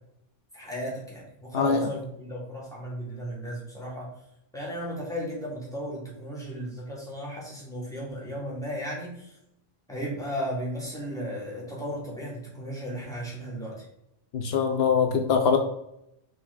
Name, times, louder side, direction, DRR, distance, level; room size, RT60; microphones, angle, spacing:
voice 1, 0.5-4.1 4.5-9.4 9.9-13.9, equal, 5° left, -5 dB, 2.5 m, -35 dB
voice 2, 14.3-15.6, left 6 dB, 75° left, 5 dB, 1.0 m, -22 dB
5.9 x 4.4 x 4.0 m, 0.80 s
omnidirectional pair, 1.0 m